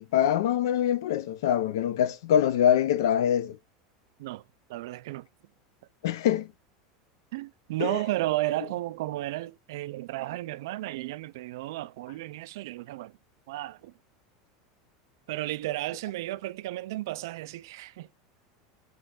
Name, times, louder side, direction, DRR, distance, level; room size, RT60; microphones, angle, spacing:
voice 1, 0.0-3.6 6.0-6.5 7.8-8.0, left 10 dB, 85° left, 0.5 m, -24 dB
voice 2, 4.7-5.3 7.3-13.2 13.5-13.9 15.3-18.1, right 17 dB, 65° right, 0.3 m, -33 dB
5.9 x 3.1 x 2.4 m
supercardioid pair, 180°, 2 cm